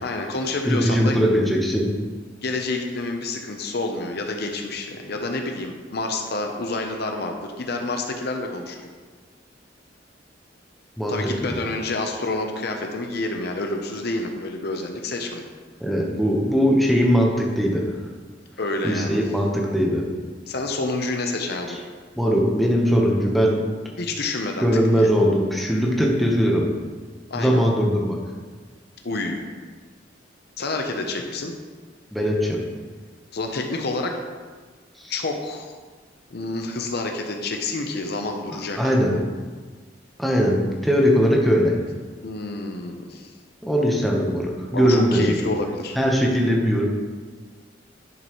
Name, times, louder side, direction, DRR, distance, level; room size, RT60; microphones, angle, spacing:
voice 1, 0.0-1.2 2.4-8.8 11.1-15.5 18.6-19.2 20.5-21.8 24.0-24.7 24.9-25.1 27.3-27.6 29.0-29.5 30.6-31.5 33.3-34.1 35.1-35.7 36.3-39.2 42.2-43.3 44.7-46.0, left 2 dB, 60° left, 3 dB, 0.7 m, -28 dB
voice 2, 0.6-1.9 11.0-11.5 15.8-17.8 18.8-20.0 22.2-23.6 24.6-26.7 27.3-28.2 32.1-32.6 35.0-35.1 38.8-39.1 40.2-41.7 43.6-45.4 46.0-46.8, equal, ahead, -2 dB, 1.0 m, -20 dB
10.5 x 5.4 x 3.1 m, 1.4 s
head